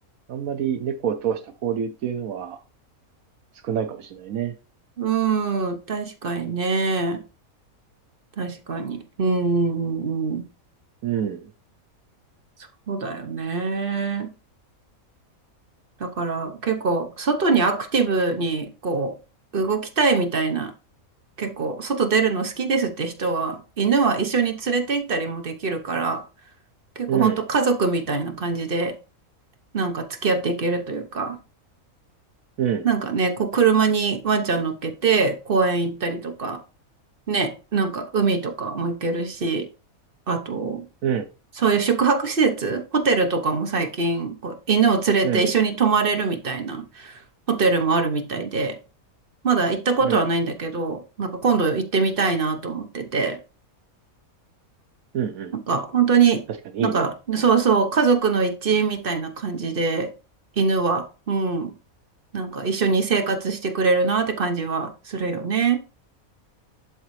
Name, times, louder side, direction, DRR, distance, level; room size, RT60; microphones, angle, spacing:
voice 1, 0.3-2.6 3.6-4.5 11.0-11.5 27.1-27.4 32.6-32.9 41.0-41.3 45.2-45.5 50.0-50.2 55.1-55.5 56.7-57.0, right 8 dB, 75° right, 1.1 m, -26 dB
voice 2, 5.0-7.2 8.4-10.5 12.9-14.3 16.0-19.1 19.5-20.7 21.4-26.2 27.0-29.0 29.7-31.4 32.8-36.6 37.3-39.7 40.3-40.9 41.6-47.2 47.5-48.8 49.4-53.4 55.5-56.5 56.8-60.1 60.6-61.7 62.3-65.8, right 4 dB, 45° right, 1.0 m, -23 dB
11.5 x 3.8 x 3.2 m
omnidirectional pair, 1.5 m